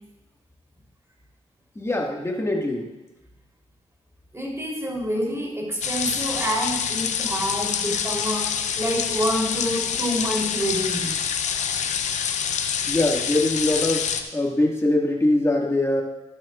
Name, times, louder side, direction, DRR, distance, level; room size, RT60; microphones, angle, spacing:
voice 1, 1.8-2.9 12.9-16.0, left 1 dB, 25° left, 0 dB, 2.0 m, -23 dB
voice 2, 4.3-8.5 8.8-11.1 11.6-11.7, equal, 25° right, -1 dB, 3.7 m, -27 dB
sound 1, 5.8-14.2, left 7 dB, 90° left, 0.6 m, -26 dB
12.5 x 11.5 x 2.5 m, 1.0 s
cardioid pair, 55°, 12 cm